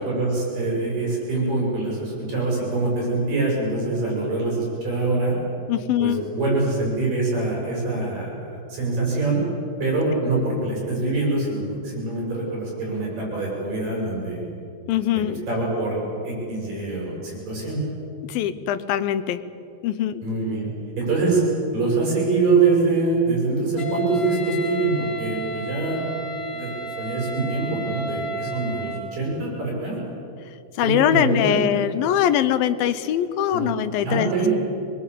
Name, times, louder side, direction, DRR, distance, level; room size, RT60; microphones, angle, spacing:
voice 1, 0.1-5.4 6.0-9.4 9.8-14.4 15.2-17.9 20.2-20.7 21.0-21.4 21.7-26.1 26.5-30.0 30.8-31.7 33.5-33.7 34.0-34.6, right 3 dB, 60° right, -3 dB, 9.1 m, -24 dB
voice 2, 5.7-6.2 14.9-15.4 18.3-19.4 19.8-20.1 30.8-34.3, left 10 dB, 75° left, 12 dB, 2.6 m, -22 dB
Wind instrument woodwind instrument, 23.8-29.1, right 1 dB, 45° left, 2.9 m, -32 dB
25.0 x 21.5 x 8.5 m, 2.7 s
omnidirectional pair, 4.4 m